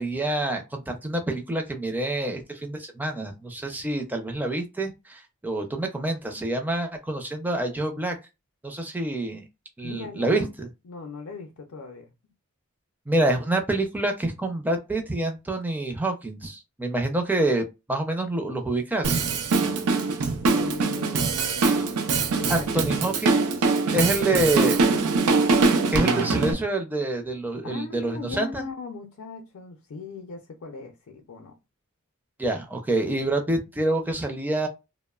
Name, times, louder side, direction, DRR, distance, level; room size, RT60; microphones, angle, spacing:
voice 1, 0.0-8.2 8.6-9.4 9.8-10.7 13.1-19.2 22.5-23.5 23.9-24.8 25.9-28.6 32.4-34.7, right 2 dB, 10° right, 0.4 m, -27 dB
voice 2, 9.8-10.5 10.8-12.1 20.4-21.9 22.4-22.9 24.0-24.5 24.9-25.2 27.6-31.5, left 4 dB, 65° left, 0.4 m, -39 dB
Drum kit, 19.0-26.5, right 4 dB, 85° right, 0.5 m, -23 dB
2.9 x 2.0 x 2.2 m
head